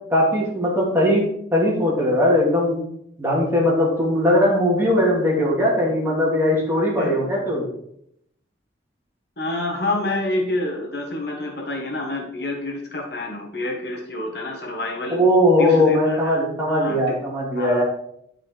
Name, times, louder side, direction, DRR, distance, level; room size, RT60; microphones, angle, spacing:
voice 1, 0.1-1.2 1.5-2.8 3.2-7.7 15.1-17.8, left 1 dB, 10° right, -5 dB, 2.6 m, -19 dB
voice 2, 9.4-15.2 15.6-16.4 16.6-17.1 17.5-17.8, left 2 dB, 60° left, 0 dB, 1.6 m, -28 dB
10.0 x 4.9 x 4.6 m, 0.72 s
head